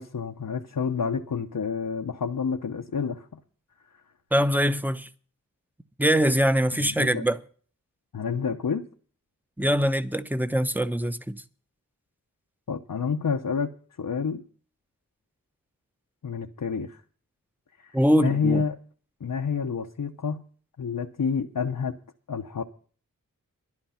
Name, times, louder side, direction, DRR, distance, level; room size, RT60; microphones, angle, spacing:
voice 1, 0.0-3.3 6.8-7.2 8.1-8.8 12.7-13.7 14.0-14.4 16.2-17.0 17.8-18.8 19.2-20.4 20.8-21.9 22.3-22.6, left 6 dB, 75° left, 1.0 m, -29 dB
voice 2, 4.3-5.1 6.0-7.4 9.6-11.4 17.9-18.6, equal, 5° right, 0.9 m, -23 dB
12.0 x 11.0 x 5.7 m
wide cardioid pair, 55°, 33 cm